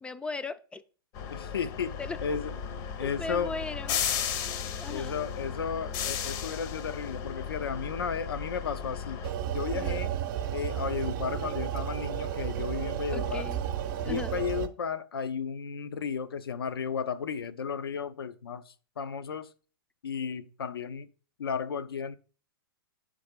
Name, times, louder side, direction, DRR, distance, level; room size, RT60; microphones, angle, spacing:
voice 1, 0.0-0.8 2.0-2.4 3.0-4.0 4.5-5.2 9.7-10.1 13.1-13.6 14.0-14.4, left 3 dB, 10° left, 0.3 m, -38 dB
sound 1, 1.1-9.3, left 7 dB, 45° left, 0.6 m, -35 dB
voice 2, 1.3-1.9 2.2-2.5 3.0-3.5 4.9-9.2 9.5-10.1 10.5-13.5 14.0-19.5 20.0-21.1 21.4-22.2, left 6 dB, 90° left, 0.5 m, -34 dB
sound 2, 9.2-14.7, right 10 dB, 55° right, 0.7 m, -32 dB
5.7 x 3.4 x 5.0 m
hypercardioid pair, 120°, 12 cm